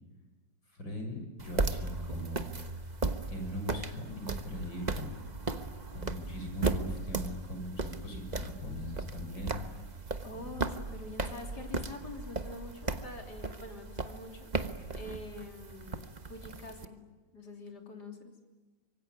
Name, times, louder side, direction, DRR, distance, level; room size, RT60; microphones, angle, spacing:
voice 1, 0.7-2.5 2.8-2.9 3.3-5.1 5.5-5.7 5.9-9.8 10.3-10.7, left 1 dB, 90° left, 4 dB, 7.4 m, -40 dB
sound 1, 1.4-16.9, right 3 dB, 25° right, 1.2 m, -37 dB
voice 2, 3.9-4.2 10.2-14.5 14.9-17.0 17.3-18.3, left 2 dB, 60° left, 4 dB, 3.8 m, -45 dB
25.5 x 23.0 x 9.6 m, 1.2 s
omnidirectional pair, 2.0 m